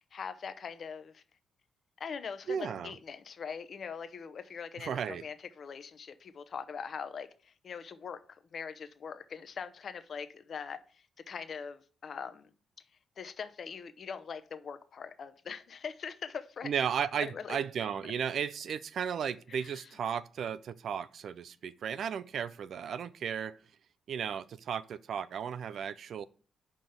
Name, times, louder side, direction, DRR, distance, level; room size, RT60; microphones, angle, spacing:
voice 1, 0.1-1.2 2.0-12.5 13.2-16.7 17.2-17.6 19.5-19.9, left 6 dB, 55° left, 0.9 m, -42 dB
voice 2, 2.5-2.9 4.8-5.2 16.6-23.6 24.1-26.3, right 7 dB, 65° right, 0.4 m, -35 dB
5.7 x 5.2 x 6.5 m
hypercardioid pair, 45°, 0 cm